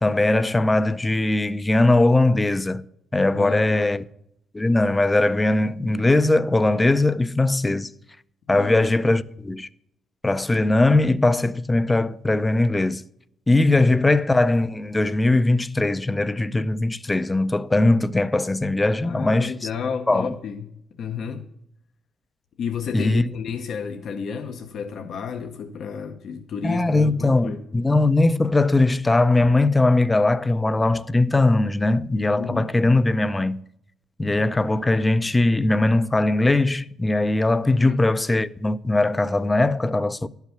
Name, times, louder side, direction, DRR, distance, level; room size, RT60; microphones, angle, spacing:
voice 1, 0.0-2.8 3.1-4.0 4.5-7.9 8.5-9.7 10.2-13.0 13.5-19.5 20.1-20.3 22.9-23.2 26.6-33.6 34.2-40.3, left 2 dB, 15° left, 0.4 m, -20 dB
voice 2, 3.3-4.0 8.5-9.1 13.8-14.0 19.0-20.7 21.0-21.5 22.6-27.6 32.4-32.7 37.8-38.0, left 6 dB, 65° left, 0.8 m, -32 dB
11.5 x 5.8 x 5.8 m
cardioid pair, 90°, 0 cm